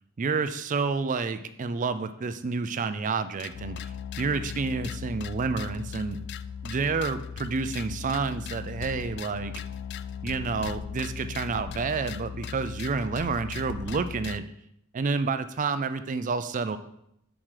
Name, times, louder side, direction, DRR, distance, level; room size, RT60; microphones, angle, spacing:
voice 1, 0.2-6.2 6.6-9.6 10.2-14.4 14.9-16.8, right 4 dB, 35° right, 12 dB, 0.4 m, -29 dB
sound 1, 3.4-14.4, left 7 dB, 50° left, 0.3 m, -38 dB
7.3 x 6.1 x 4.9 m, 0.77 s
head